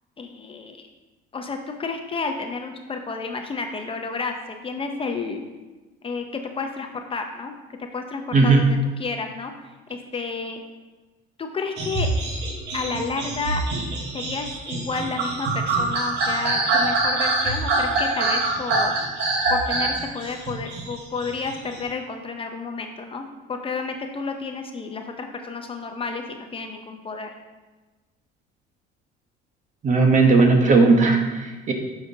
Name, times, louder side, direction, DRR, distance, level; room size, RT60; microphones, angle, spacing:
voice 1, 0.2-0.8 1.3-5.5 6.0-7.5 7.8-10.6 11.4-12.1 12.7-13.6 14.1-18.9 19.5-27.3, left 4 dB, 30° left, 4 dB, 0.6 m, -31 dB
voice 2, 8.3-8.7 29.8-31.7, right 3 dB, 40° right, 3 dB, 1.0 m, -17 dB
sound 1, 11.8-21.8, right 2 dB, 65° right, 1.3 m, -25 dB
6.3 x 5.8 x 2.8 m, 1.2 s
supercardioid pair, 95°, 19 cm